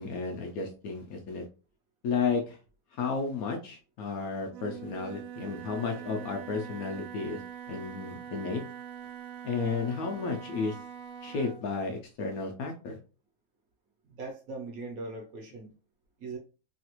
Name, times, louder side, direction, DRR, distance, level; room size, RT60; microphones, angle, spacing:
voice 1, 0.0-1.4 2.0-2.6 2.9-7.4 7.7-8.6 9.4-10.8 11.2-13.0, left 4 dB, 70° left, 0.9 m, -32 dB
Wind instrument woodwind instrument, 4.5-11.7, right 9 dB, 85° right, 0.6 m, -43 dB
voice 2, 14.1-15.7 16.2-16.4, right 3 dB, 65° right, 1.1 m, -40 dB
3.1 x 2.4 x 2.9 m
omnidirectional pair, 1.8 m